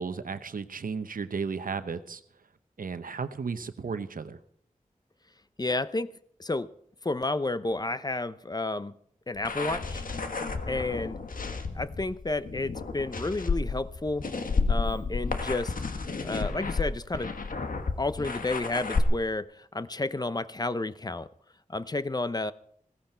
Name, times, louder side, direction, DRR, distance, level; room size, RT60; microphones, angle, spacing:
voice 1, 0.0-2.2 2.8-4.4, right 5 dB, 80° right, 11 dB, 0.9 m, -34 dB
voice 2, 5.6-6.7 7.0-8.9 9.3-10.0 10.7-11.2 11.7-14.3 14.7-15.7 16.2-17.3 18.0-21.3 21.7-22.5, left 2 dB, 30° left, 15 dB, 0.7 m, -31 dB
sound 1, 9.4-19.0, left 4 dB, 80° left, 1.4 m, -31 dB
16.5 x 14.5 x 4.5 m, 0.66 s
cardioid pair, 50°, 14 cm